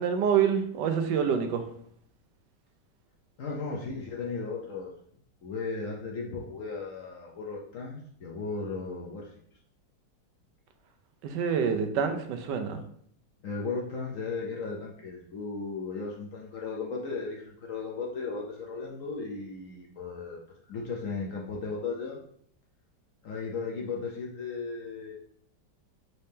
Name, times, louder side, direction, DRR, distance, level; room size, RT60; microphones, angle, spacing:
voice 1, 0.0-1.6 11.2-12.8, right 7 dB, 85° right, 6 dB, 1.2 m, -26 dB
voice 2, 3.4-4.9 5.4-9.3 13.4-20.4 20.7-22.2 23.2-25.1, left 4 dB, 65° left, -1 dB, 0.8 m, -36 dB
4.2 x 2.7 x 3.4 m, 0.63 s
omnidirectional pair, 1.9 m